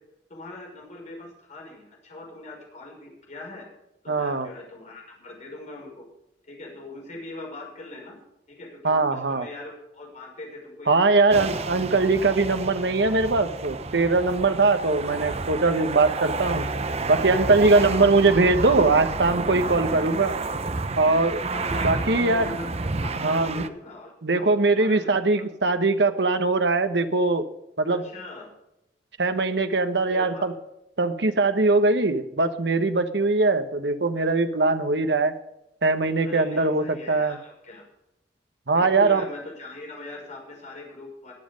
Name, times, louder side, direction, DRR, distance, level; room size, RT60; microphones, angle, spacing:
voice 1, 0.3-3.7 4.0-6.0 6.5-8.2 8.5-11.7 17.7-18.1 18.6-18.8 21.5-25.4 27.9-28.5 30.1-30.5 36.2-37.8 38.7-41.3, left 2 dB, 40° left, -1 dB, 5.7 m, -41 dB
voice 2, 4.1-4.5 8.8-9.5 10.9-16.7 17.1-20.3 21.0-21.4 21.8-22.5 23.2-23.6 24.2-27.4 27.8-28.0 29.2-30.5 31.0-35.3 35.8-37.4 38.7-39.2, right 3 dB, 75° right, 8 dB, 1.1 m, -21 dB
sound 1, 11.3-23.7, right 3 dB, 35° right, 0.8 m, -30 dB
21.5 x 7.6 x 5.2 m, 0.85 s
head